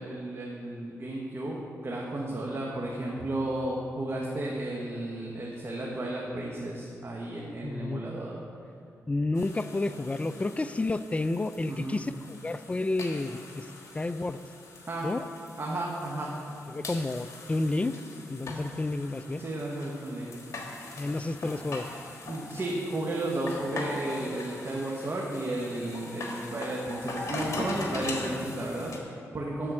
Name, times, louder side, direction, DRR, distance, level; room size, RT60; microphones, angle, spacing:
voice 1, 0.0-1.6 1.8-8.4 11.6-12.0 14.9-15.1 15.6-16.3 19.4-20.3 22.3-29.7, right 1 dB, 45° right, -3 dB, 1.3 m, -33 dB
voice 2, 7.6-8.0 9.1-13.7 13.9-14.4 15.0-15.3 16.7-18.0 18.3-19.4 21.0-21.9, left 2 dB, 20° left, 13 dB, 0.4 m, -30 dB
sound 1, 9.4-29.0, left 2 dB, 60° left, 1.4 m, -41 dB
12.5 x 4.2 x 6.2 m, 2.4 s
cardioid pair, 60°, 6 cm